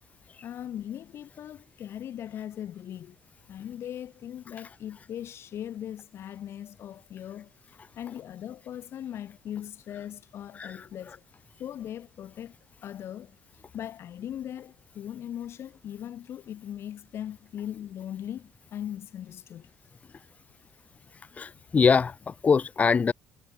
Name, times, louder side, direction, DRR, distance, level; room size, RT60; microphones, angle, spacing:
voice 1, 0.4-3.2 3.5-11.2 11.6-12.5 12.8-19.7, left 10 dB, 55° left, 1.5 m, -39 dB
voice 2, 21.4-23.1, left 5 dB, 30° left, 0.6 m, -23 dB
cardioid pair, 115°, 5 cm